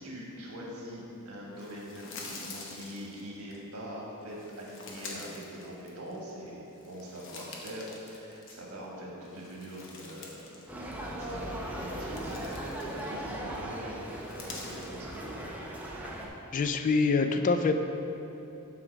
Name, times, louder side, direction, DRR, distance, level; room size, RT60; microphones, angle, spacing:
voice 1, 0.0-10.6 11.0-14.0 14.5-15.1, equal, 70° right, -3 dB, 1.5 m, -43 dB
sound 1, 1.5-3.6 4.3-6.3 6.7-8.8 9.2-10.7 10.9-11.1 11.7-13.4 14.1-15.0, left 3 dB, 60° left, 0.9 m, -46 dB
sound 2, 10.7-16.3, right 1 dB, 5° right, 0.7 m, -38 dB
voice 2, 16.5-17.7, left 4 dB, 35° left, 8 dB, 0.3 m, -25 dB
7.5 x 3.7 x 6.0 m, 2.9 s
head